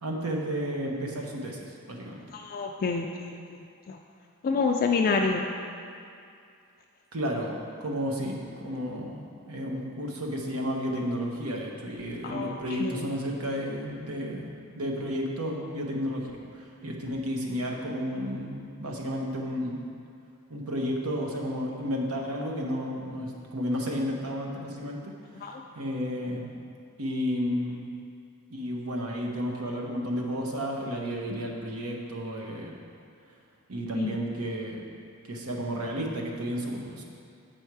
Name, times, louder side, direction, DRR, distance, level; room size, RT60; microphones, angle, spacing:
voice 1, 0.0-2.2 7.1-19.8 20.5-25.1 25.5-26.5 27.0-27.9 28.5-32.7 33.7-34.8 35.3-37.0, equal, 75° right, 0 dB, 0.9 m, -32 dB
voice 2, 2.3-3.4 3.9-4.0 4.4-5.4 12.2-13.1 25.4-25.5 33.9-34.2, left 4 dB, 40° left, 2 dB, 0.3 m, -28 dB
7.8 x 4.4 x 4.6 m, 2.4 s
head